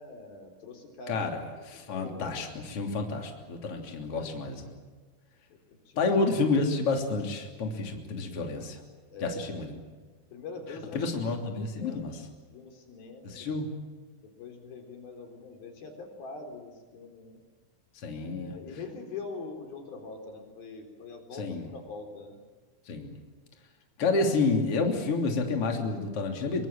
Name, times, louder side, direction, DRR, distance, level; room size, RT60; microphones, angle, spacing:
voice 1, 0.0-2.4 5.7-6.1 9.1-9.5 10.3-11.0 11.5-12.2 12.5-13.7 14.2-17.4 18.2-22.4, left 3 dB, 75° left, 3 dB, 5.8 m, -43 dB
voice 2, 1.1-1.4 1.7-4.7 6.0-8.8 9.2-9.8 10.9-12.2 13.2-13.7 18.0-18.6 21.4-21.7 22.9-23.2 24.0-26.7, left 3 dB, 40° left, 2 dB, 3.8 m, -29 dB
26.0 x 23.5 x 7.6 m, 1.4 s
omnidirectional pair, 4.3 m